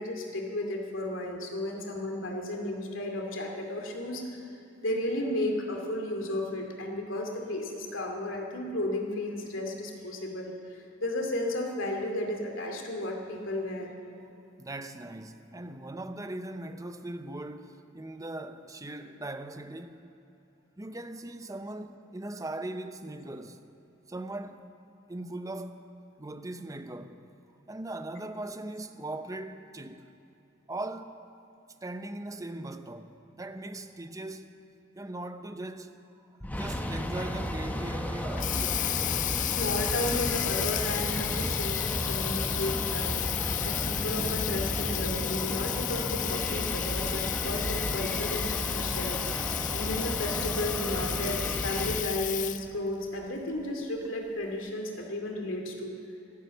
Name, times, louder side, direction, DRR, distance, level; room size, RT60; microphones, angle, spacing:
voice 1, 0.0-4.4 4.8-14.0 39.4-43.2 43.6-49.2 49.7-56.0, left 1 dB, 75° left, 2.5 m, -33 dB
voice 2, 14.6-20.1 20.8-23.6 24.1-24.7 25.1-25.9 26.2-27.2 27.7-30.1 30.7-31.2 31.8-34.6 34.9-36.0 36.5-38.9, right 2 dB, 15° right, 0.7 m, -39 dB
sound 1, 36.4-52.0, equal, 10° left, 0.9 m, -33 dB
Water tap faucet, 38.1-52.8, left 14 dB, 40° left, 0.4 m, -33 dB
13.5 x 12.0 x 7.7 m
head